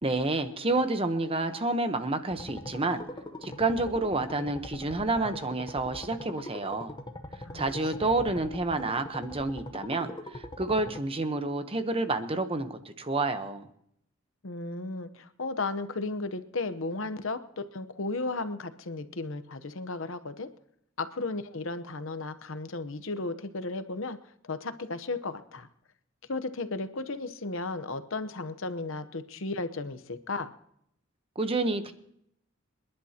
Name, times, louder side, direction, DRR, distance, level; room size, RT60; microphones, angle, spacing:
voice 1, 0.0-3.0 3.4-6.9 7.5-13.7 31.4-31.9, right 2 dB, 25° right, 9 dB, 0.9 m, -29 dB
sound 1, 2.3-11.0, left 1 dB, 20° left, 0.8 m, -42 dB
voice 2, 14.4-20.5 21.0-24.2 24.5-25.7 26.3-30.5, left 3 dB, 60° left, 12 dB, 0.9 m, -34 dB
27.5 x 11.0 x 2.9 m, 0.73 s
head